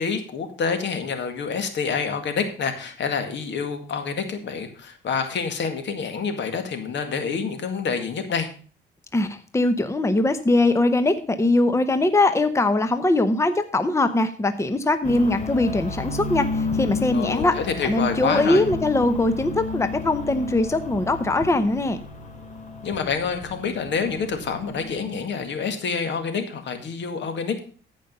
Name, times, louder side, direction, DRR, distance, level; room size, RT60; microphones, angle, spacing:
voice 1, 0.0-8.5 17.1-18.6 22.8-27.6, left 5 dB, 65° left, 7 dB, 2.0 m, -27 dB
voice 2, 9.1-17.6 17.8-22.0, left 2 dB, 15° left, 11 dB, 0.9 m, -21 dB
sound 1, 15.0-25.3, left 3 dB, 40° left, 2.7 m, -32 dB
14.5 x 5.4 x 5.4 m, 0.41 s
cardioid pair, 90°, 20 cm